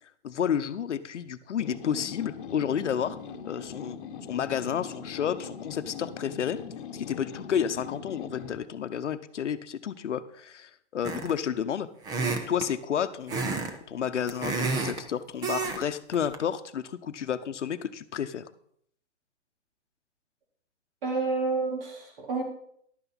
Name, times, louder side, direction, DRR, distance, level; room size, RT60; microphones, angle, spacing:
voice 1, 0.2-3.2 3.4-4.0 4.3-6.6 6.9-11.9 12.5-13.4 13.9-18.4, left 8 dB, 80° left, 12 dB, 0.9 m, -31 dB
sound 1, 1.6-8.6, left 7 dB, 45° left, 1.2 m, -41 dB
sound 2, 11.0-11.5 12.0-12.7 13.3-13.7 14.0-15.0 15.4-15.8 16.1-16.4, right 4 dB, 10° right, 0.6 m, -30 dB
voice 2, 21.0-22.4, right 3 dB, 50° right, 0 dB, 4.1 m, -29 dB
11.5 x 9.1 x 4.1 m, 0.67 s
hypercardioid pair, 140°, 35 cm